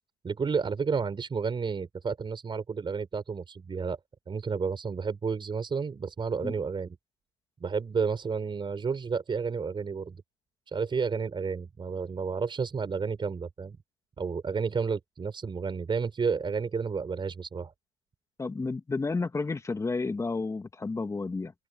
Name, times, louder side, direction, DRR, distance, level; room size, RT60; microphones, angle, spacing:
voice 1, 0.2-4.0 4.3-7.0 7.6-10.2 10.7-13.8 14.2-17.7, right 5 dB, 15° right, 5.0 m, -31 dB
voice 2, 18.4-21.5, left 3 dB, 10° left, 2.8 m, -31 dB
hypercardioid pair, 125°, 34 cm